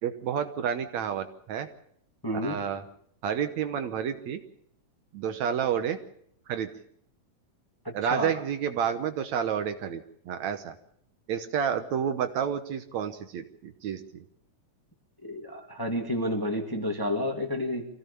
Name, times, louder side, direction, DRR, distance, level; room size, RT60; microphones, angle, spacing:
voice 1, 0.0-1.7 2.4-2.8 3.2-4.4 5.1-6.0 6.5-6.7 7.9-10.8 11.3-14.2, right 8 dB, 70° right, 9 dB, 2.2 m, -30 dB
voice 2, 2.2-2.6 7.8-8.4 15.2-17.9, equal, 10° left, 3 dB, 1.8 m, -30 dB
25.0 x 16.5 x 6.9 m, 0.68 s
omnidirectional pair, 3.6 m